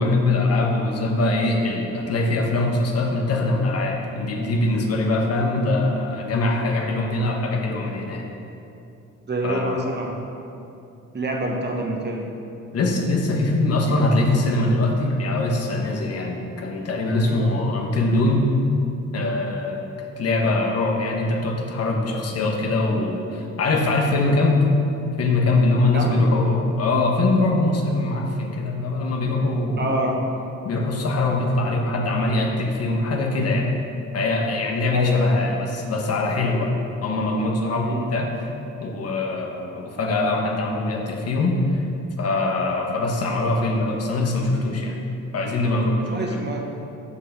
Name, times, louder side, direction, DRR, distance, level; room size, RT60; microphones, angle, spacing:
voice 1, 0.0-8.3 9.4-9.7 12.7-18.5 19.1-19.9 20.2-24.7 25.2-29.9 30.6-33.7 34.1-36.7 37.0-38.5 38.8-41.8 42.2-45.0 45.3-46.4, left 2 dB, 55° left, 1 dB, 1.2 m, -22 dB
voice 2, 9.3-10.2 11.1-12.3 25.9-26.2 29.8-30.2 34.9-35.3 37.8-38.1 46.1-46.6, right 2 dB, 35° right, 1 dB, 1.3 m, -26 dB
6.7 x 5.4 x 6.8 m, 2.7 s
cardioid pair, 90°, 30 cm